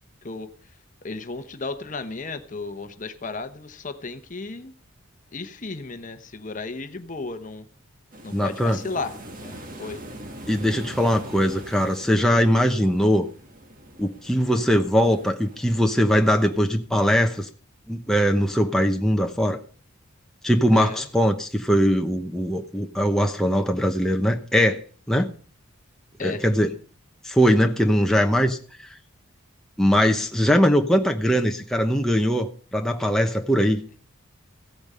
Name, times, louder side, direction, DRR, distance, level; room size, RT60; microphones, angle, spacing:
voice 1, 1.0-4.7 5.3-7.7 8.2-9.1 9.4-10.0 20.7-21.0 26.2-26.4, left 3 dB, 35° left, 9 dB, 0.9 m, -34 dB
sound 1, 8.1-16.6, right 1 dB, 40° right, 1.8 m, -42 dB
voice 2, 8.3-8.8 10.5-13.3 14.0-17.5 17.9-19.6 20.4-24.8 25.1-25.3 26.2-26.7 27.2-28.9 29.8-33.8, equal, ahead, 3 dB, 0.9 m, -21 dB
15.5 x 8.6 x 5.5 m, 0.41 s
head